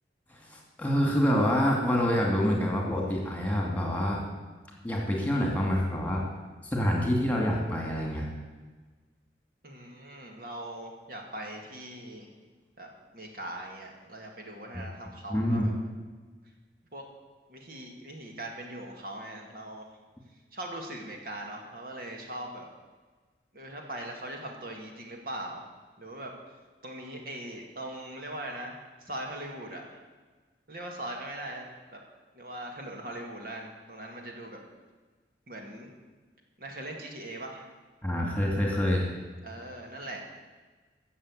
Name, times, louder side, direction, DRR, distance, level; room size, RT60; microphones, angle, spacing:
voice 1, 0.3-4.2 4.8-6.3 6.6-8.3 14.7-14.8 15.3-15.7 38.0-39.1, equal, 10° left, -1 dB, 2.4 m, -27 dB
voice 2, 9.6-12.3 12.8-15.7 16.9-17.0 17.5-19.9 20.5-22.7 23.5-25.6 26.0-26.3 26.8-30.0 30.7-32.0 32.3-34.6 35.5-35.9 36.6-37.7 39.4-40.2, right 1 dB, 55° right, 1 dB, 2.2 m, -40 dB
15.5 x 6.9 x 8.1 m, 1.3 s
head